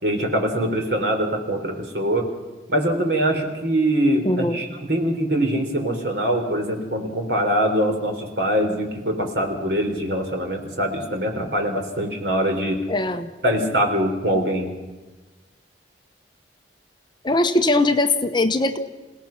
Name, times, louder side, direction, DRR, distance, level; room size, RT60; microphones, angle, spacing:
voice 1, 0.0-2.3 2.7-12.8 13.4-14.7, right 1 dB, 60° right, 4 dB, 3.8 m, -23 dB
voice 2, 4.2-4.6 12.9-13.3 17.2-18.8, left 2 dB, 25° left, 8 dB, 1.0 m, -20 dB
28.0 x 17.5 x 5.9 m, 1.2 s
head